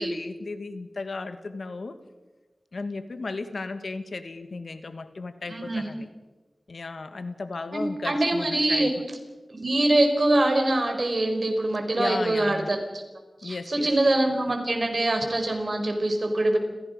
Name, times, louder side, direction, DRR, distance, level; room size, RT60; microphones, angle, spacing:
voice 1, 0.0-2.0 2.7-6.1 6.7-9.0 12.0-12.7 13.4-13.9, left 3 dB, 85° left, 10 dB, 1.5 m, -35 dB
voice 2, 5.5-5.8 7.7-8.9 9.5-13.0 13.4-16.6, right 1 dB, 60° right, 4 dB, 4.6 m, -24 dB
29.5 x 16.5 x 5.4 m, 1.2 s
wide cardioid pair, 50°, 0 cm